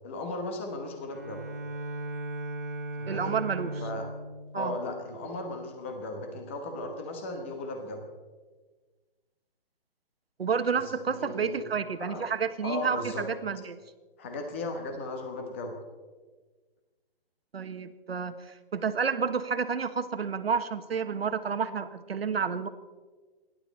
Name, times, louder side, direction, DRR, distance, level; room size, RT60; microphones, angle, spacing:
voice 1, 0.0-1.4 3.0-3.4 3.8-4.1 4.5-8.0 10.7-10.8 11.2-11.6 12.0-12.2 12.6-13.3 14.2-15.7, left 2 dB, 15° left, 4 dB, 1.1 m, -36 dB
Bowed string instrument, 1.1-5.7, right 1 dB, 15° right, 0.7 m, -38 dB
voice 2, 3.1-3.8 4.5-4.8 10.4-13.8 17.5-22.7, right 6 dB, 80° right, 10 dB, 1.5 m, -30 dB
29.0 x 11.5 x 4.2 m, 1.3 s
hypercardioid pair, 180°, 30 cm